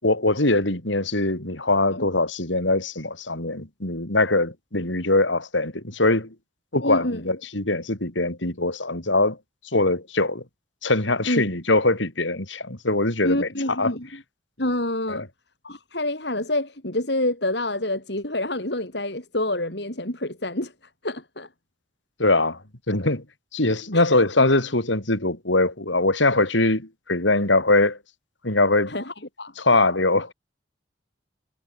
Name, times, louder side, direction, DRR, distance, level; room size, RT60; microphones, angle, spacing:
voice 1, 0.0-6.3 6.7-9.4 9.7-10.4 10.8-13.9 15.1-15.3 22.2-22.6 22.9-23.2 23.5-28.0 28.4-28.9 29.6-30.3, left 2 dB, 85° left, 4.9 m, -22 dB
voice 2, 6.8-7.3 11.3-11.4 13.2-14.2 14.6-15.3 15.6-20.7 21.0-21.5 23.9-24.2 28.9-29.5, left 1 dB, 65° left, 5.6 m, -27 dB
head